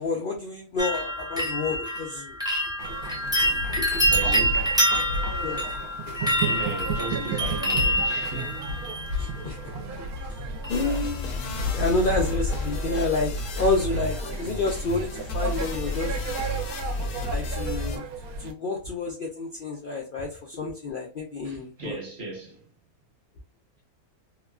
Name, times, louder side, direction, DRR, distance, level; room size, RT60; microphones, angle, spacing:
voice 1, 0.0-2.3 3.3-3.4 3.8-3.9 5.4-5.6 9.2-9.6 10.0-10.1 10.7-16.5 17.3-18.0 18.4-22.0, left 3 dB, 90° left, 0.4 m, -29 dB
sound 1, 0.8-9.7 10.6-11.2 11.4-12.0 12.3-12.4, right 1 dB, 5° right, 0.4 m, -27 dB
sound 2, 2.8-18.5, right 1 dB, 80° right, 1.1 m, -33 dB
voice 2, 4.1-5.0 6.3-8.6 21.4-22.6, right 2 dB, 45° right, 1.2 m, -37 dB
sound 3, 10.7-18.0, left 1 dB, 70° left, 0.9 m, -32 dB
2.9 x 2.2 x 2.3 m
omnidirectional pair, 1.6 m